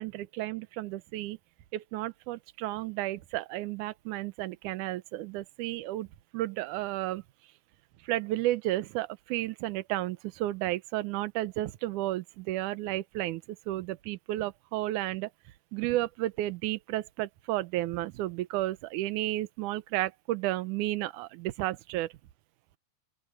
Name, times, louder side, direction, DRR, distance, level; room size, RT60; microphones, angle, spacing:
voice 1, 0.0-1.4 1.7-6.1 6.3-7.2 8.0-13.4 13.7-15.3 15.7-22.1, right 16 dB, 75° right, 1.8 m, -32 dB
open air
omnidirectional pair, 4.6 m